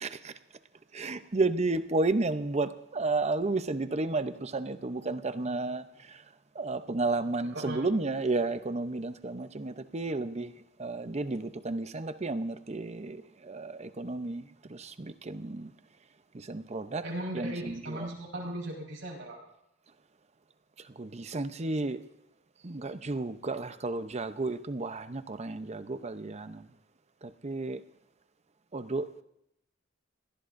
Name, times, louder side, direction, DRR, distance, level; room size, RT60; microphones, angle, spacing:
voice 1, 0.0-0.3 0.9-6.2 6.5-10.5 10.8-14.4 14.7-15.7 16.3-17.0 17.3-18.1 21.0-22.0 22.6-26.7 27.2-27.8 28.7-29.2, right 3 dB, 35° right, 0.7 m, -32 dB
voice 2, 7.5-7.9 17.0-19.4, right 1 dB, 80° right, 5.0 m, -37 dB
25.5 x 18.0 x 2.6 m
head